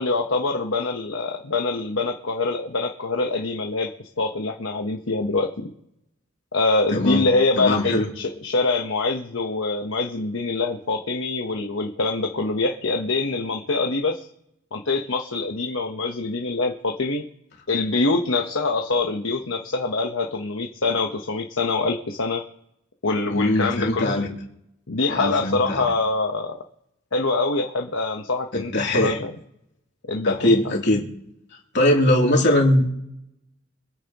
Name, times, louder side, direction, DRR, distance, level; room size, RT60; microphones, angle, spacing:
voice 1, 0.0-3.9 4.2-5.5 6.5-14.3 14.7-17.2 17.7-22.4 23.0-24.2 24.9-26.6 27.1-29.3 30.1-30.6, left 3 dB, 75° left, 2 dB, 1.1 m, -24 dB
voice 2, 6.9-7.2 7.6-8.1 23.3-24.3 25.1-25.8 28.5-29.2 30.2-31.0 31.7-32.9, left 1 dB, 60° left, -1 dB, 3.0 m, -21 dB
26.0 x 8.9 x 3.0 m, 0.81 s
head